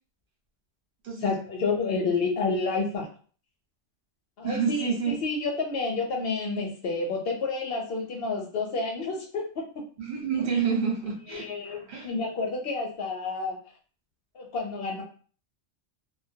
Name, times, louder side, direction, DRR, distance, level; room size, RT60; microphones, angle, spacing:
voice 1, 1.2-3.1 4.4-9.6 11.3-13.6 14.3-15.0, left 3 dB, 60° left, 1 dB, 0.7 m, -29 dB
voice 2, 4.4-5.1 10.0-12.1, right 6 dB, 40° right, -3 dB, 0.9 m, -29 dB
2.2 x 2.2 x 2.6 m, 0.41 s
omnidirectional pair, 1.3 m